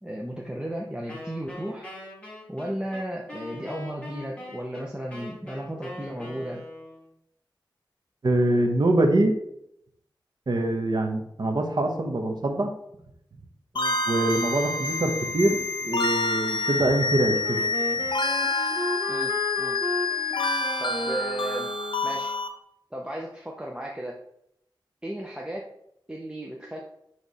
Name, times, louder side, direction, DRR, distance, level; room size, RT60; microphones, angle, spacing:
voice 1, 0.0-1.9 2.5-6.7 13.7-14.0 19.1-19.3 19.6-19.8 20.8-21.7 22.0-22.3 22.9-24.2 25.0-25.7 26.1-26.8, right 1 dB, 10° right, -1 dB, 0.9 m, -34 dB
Wind instrument woodwind instrument, 1.1-7.1, left 2 dB, 15° left, 2.5 m, -42 dB
voice 2, 8.2-9.3 10.5-12.7 14.1-17.6, right 1 dB, 55° right, 3 dB, 1.3 m, -24 dB
sound 1, 13.8-22.5, left 3 dB, 75° left, 0.8 m, -28 dB
Wind instrument woodwind instrument 2, 17.4-22.4, equal, 30° right, 1.2 m, -34 dB
9.9 x 3.4 x 4.2 m, 0.74 s
wide cardioid pair, 75°, 8 cm